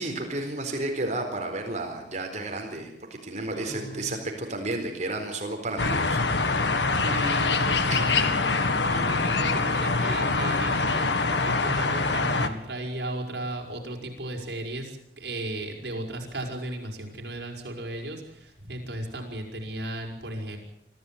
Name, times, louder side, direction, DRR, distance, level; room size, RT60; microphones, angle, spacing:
voice 1, 0.0-6.2, right 2 dB, 45° right, 4 dB, 4.3 m, -32 dB
voice 2, 3.5-4.2 6.9-8.3 8.8-20.6, right 1 dB, 70° right, 1 dB, 5.8 m, -36 dB
sound 1, 5.8-12.5, left 3 dB, 80° left, 1.9 m, -24 dB
25.0 x 14.5 x 9.3 m, 0.78 s
head